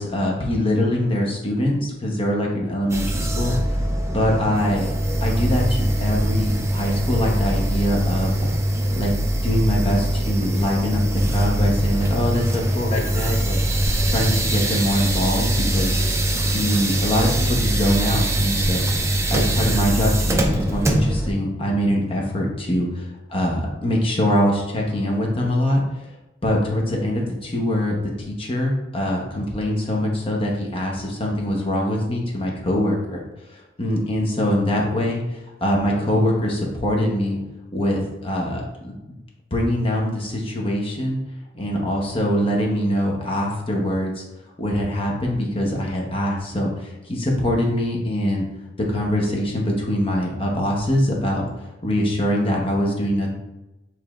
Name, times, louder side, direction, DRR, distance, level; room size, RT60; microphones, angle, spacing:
voice 1, 0.0-3.8 4.1-4.9 5.2-8.6 9.0-9.1 9.4-13.6 14.1-16.1 16.5-26.1 26.4-33.2 33.5-37.4 37.7-38.9 39.5-41.2 41.5-44.2 44.6-48.4 48.8-53.3, equal, 30° left, -1 dB, 0.8 m, -23 dB
sound 1, 2.9-21.3, right 1 dB, 15° right, 0.4 m, -22 dB
6.8 x 3.0 x 2.4 m, 0.99 s
head